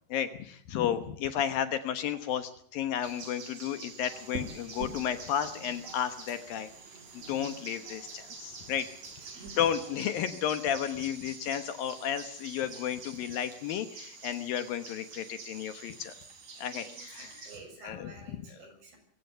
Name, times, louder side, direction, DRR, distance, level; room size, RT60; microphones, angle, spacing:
voice 1, 0.1-6.7 7.1-9.2 9.6-16.1 16.6-17.5 17.8-18.4, left 9 dB, 70° left, 11 dB, 2.6 m, -33 dB
sound 1, 3.0-17.6, right 4 dB, 45° right, 4.7 m, -48 dB
sound 2, 4.0-9.8, right 4 dB, 85° right, 5.4 m, -47 dB
voice 2, 9.2-9.6 16.5-19.0, right 3 dB, 60° right, 4 dB, 8.7 m, -52 dB
23.5 x 16.5 x 7.9 m, 0.63 s
omnidirectional pair, 4.8 m